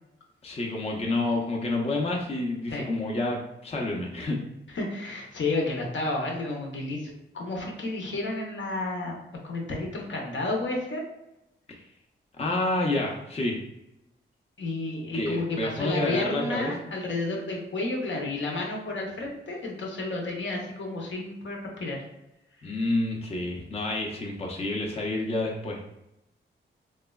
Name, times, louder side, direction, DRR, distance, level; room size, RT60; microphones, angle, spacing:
voice 1, 0.4-4.4 11.7-11.8 12.4-13.6 15.1-17.0 22.6-25.8, left 2 dB, 30° left, -1 dB, 0.5 m, -29 dB
voice 2, 4.7-9.2 9.4-11.0 14.6-22.0 22.6-22.7, left 2 dB, 65° left, -1 dB, 0.7 m, -31 dB
3.0 x 2.1 x 2.3 m, 0.85 s
cardioid pair, 60°, 21 cm